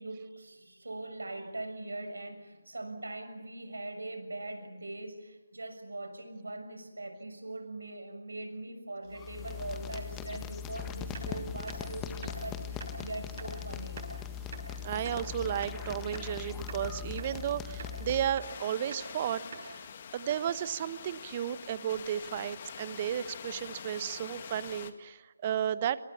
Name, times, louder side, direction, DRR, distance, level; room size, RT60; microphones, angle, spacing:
voice 1, 0.0-14.1, right 2 dB, 75° right, 7 dB, 6.6 m, -41 dB
sound 1, 9.1-18.5, left 8 dB, 15° left, 1.6 m, -40 dB
sound 2, 11.1-11.3 11.7-11.8 12.2-12.4 12.8-12.9 13.4-13.5 14.0-14.1 14.5-14.7 15.1-15.2 15.6-16.3 16.7-16.8 17.2-17.3 17.8-18.0 18.4-18.5 18.9-19.1 19.5-19.7 20.0-20.1 20.3-20.5, right 3 dB, 45° right, 7.8 m, -44 dB
voice 2, 14.8-19.9 20.1-26.0, right 10 dB, 30° right, 15 dB, 1.2 m, -33 dB
sound 3, 18.4-24.9, left 7 dB, 35° left, 2.2 m, -45 dB
28.0 x 27.5 x 7.2 m, 1.2 s
figure-of-eight pair, 155°, 0 cm